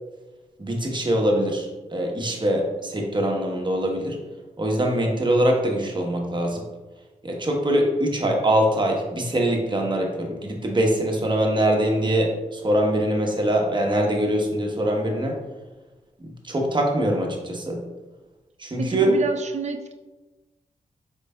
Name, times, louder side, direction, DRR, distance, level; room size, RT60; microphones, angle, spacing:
voice 1, 0.6-4.2 4.6-6.6 7.2-15.4 16.2-17.8 18.6-19.2, right 1 dB, 35° right, 1 dB, 1.0 m, -23 dB
voice 2, 18.8-19.9, right 4 dB, 55° right, 5 dB, 0.5 m, -28 dB
4.8 x 4.5 x 2.2 m, 1.2 s
cardioid pair, 60°, 14 cm